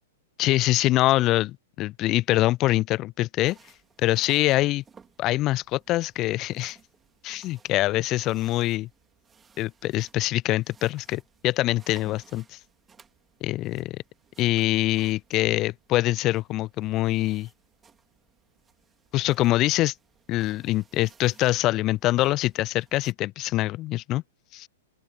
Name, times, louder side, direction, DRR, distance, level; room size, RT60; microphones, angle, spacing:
voice 1, 0.4-1.5 1.8-3.6 4.0-4.8 5.2-6.8 7.2-8.9 9.6-12.6 13.4-14.0 14.4-17.5 19.1-19.9 20.3-24.2 24.5-24.7, left 17 dB, 30° left, 0.4 m, -24 dB
sound 1, 3.5-23.1, right 6 dB, 15° right, 4.1 m, -58 dB
open air
figure-of-eight pair, 105°, 0 cm